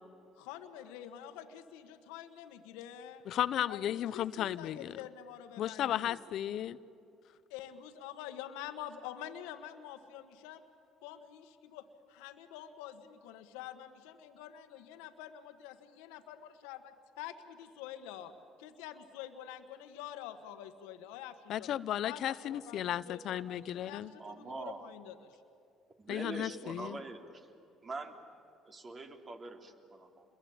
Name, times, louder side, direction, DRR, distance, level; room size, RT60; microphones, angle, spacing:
voice 1, 0.4-3.3 3.7-6.2 7.5-10.6 11.0-18.3 18.6-21.7 22.0-25.4, left 11 dB, 85° left, 8 dB, 1.4 m, -47 dB
voice 2, 3.3-5.0 5.6-6.8 21.5-24.1 26.1-27.0, left 11 dB, 65° left, 17 dB, 0.8 m, -34 dB
voice 3, 24.2-24.8 26.0-27.5 27.8-28.2 28.6-30.2, right 3 dB, 35° right, 5 dB, 3.8 m, -44 dB
29.0 x 22.5 x 8.8 m, 2.6 s
supercardioid pair, 70°, 0 cm